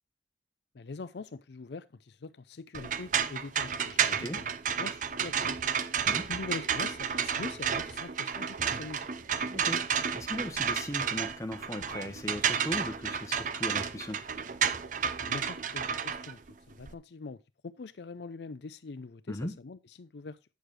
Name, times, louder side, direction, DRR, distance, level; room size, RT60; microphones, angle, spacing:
voice 1, 0.7-4.5 4.8-5.7 6.1-9.1 15.2-16.4 16.7-20.4, left 4 dB, 70° left, 0.5 m, -43 dB
sound 1, 2.7-16.9, right 7 dB, 45° right, 0.6 m, -31 dB
voice 2, 4.1-4.4 6.0-6.2 9.5-9.8 10.1-14.2 19.3-19.5, left 1 dB, 15° left, 1.2 m, -38 dB
sound 2, 5.5-9.7 11.7-12.1, right 3 dB, 65° right, 5.3 m, -52 dB
9.2 x 6.5 x 3.3 m
head